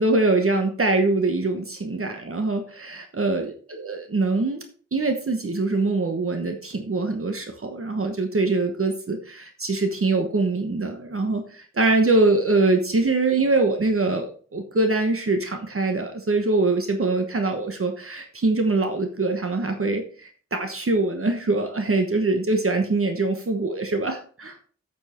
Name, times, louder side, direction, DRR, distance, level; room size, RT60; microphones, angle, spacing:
voice 1, 0.0-4.7 4.9-24.6, right 3 dB, 50° right, 5 dB, 1.1 m, -23 dB
8.9 x 5.4 x 4.3 m, 0.43 s
wide cardioid pair, 90°, 29 cm